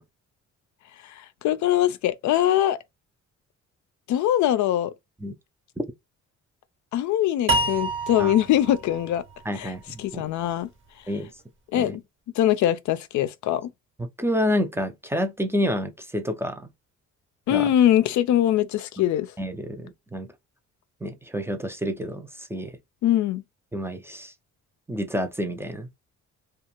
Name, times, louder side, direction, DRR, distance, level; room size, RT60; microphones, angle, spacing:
voice 1, 1.0-2.8 4.1-4.9 6.9-9.2 9.6-9.7 10.0-10.7 11.7-12.0 12.4-13.7 17.5-19.3 23.0-23.4, left 12 dB, 70° left, 0.4 m, -22 dB
sound 1, 7.5-10.7, right 2 dB, 40° right, 0.9 m, -29 dB
voice 2, 9.5-10.3 11.1-11.3 11.7-12.0 14.2-16.7 17.5-17.7 19.4-20.3 21.0-22.7 23.7-24.3 24.9-25.9, equal, 10° right, 0.5 m, -28 dB
2.4 x 2.4 x 2.9 m
cardioid pair, 90°, 30 cm